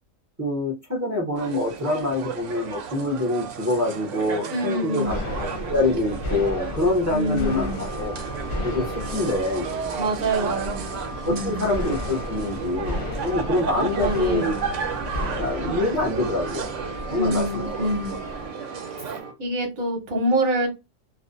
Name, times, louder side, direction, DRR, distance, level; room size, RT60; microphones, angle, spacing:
voice 1, 0.4-8.1 8.6-9.7 10.3-10.5 11.2-13.0 13.2-14.6 15.4-16.7 17.1-17.9, left 2 dB, 25° right, 0.4 m, -25 dB
sound 1, 1.4-19.2, right 7 dB, 70° right, 0.8 m, -34 dB
voice 2, 4.5-5.1 7.1-7.8 10.0-10.9 11.3-11.7 13.7-14.6 17.1-18.1 19.4-20.7, right 1 dB, 40° right, 0.8 m, -26 dB
sound 2, 5.0-18.5, left 1 dB, 50° left, 0.7 m, -34 dB
sound 3, 7.4-19.3, right 3 dB, 85° right, 1.1 m, -38 dB
2.4 x 2.1 x 2.5 m
omnidirectional pair, 1.5 m